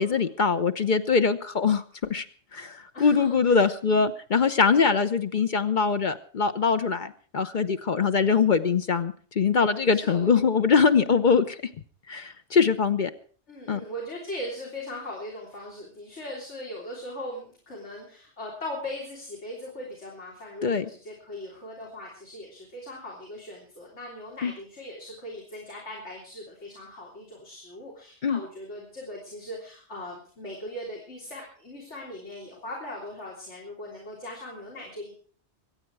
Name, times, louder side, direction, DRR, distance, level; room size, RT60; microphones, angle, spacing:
voice 1, 0.0-1.8 2.1-2.2 2.5-11.6 12.1-13.1 13.7-13.8 20.6-20.9 24.4-24.5 28.2-28.4, left 5 dB, 45° left, 10 dB, 0.8 m, -23 dB
voice 2, 2.9-3.6 4.7-5.1 9.5-10.4 13.5-35.1, left 1 dB, 80° left, -3 dB, 3.7 m, -39 dB
24.0 x 8.9 x 4.7 m, 0.43 s
omnidirectional pair, 1.2 m